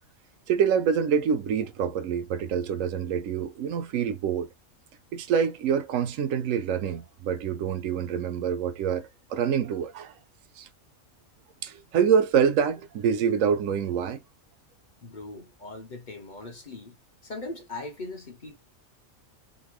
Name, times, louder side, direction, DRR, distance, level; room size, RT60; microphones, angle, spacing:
voice 1, 0.5-4.5 5.1-10.1 10.6-10.7 11.6-14.2, right 7 dB, 75° right, 1.0 m, -26 dB
voice 2, 15.0-17.0 17.2-18.6, left 2 dB, 40° left, 1.0 m, -40 dB
3.9 x 2.2 x 3.0 m
omnidirectional pair, 1.4 m